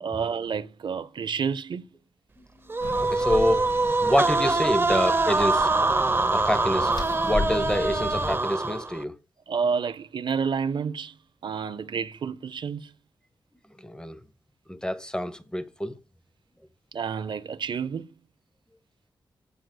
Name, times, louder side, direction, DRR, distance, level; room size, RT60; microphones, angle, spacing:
voice 1, 0.0-1.9 9.5-11.1 11.4-12.9 16.9-18.1, right 6 dB, 65° right, 0.5 m, -29 dB
voice 2, 2.4-3.7 4.0-5.7 6.3-6.9 7.2-9.1 13.8-14.2 14.7-16.0, left 1 dB, 10° left, 0.8 m, -27 dB
sound 1, 2.7-9.0, right 3 dB, 25° right, 0.7 m, -24 dB
sound 2, 2.8-8.4, left 3 dB, 65° left, 2.9 m, -35 dB
15.5 x 6.2 x 2.2 m
wide cardioid pair, 100°, 8 cm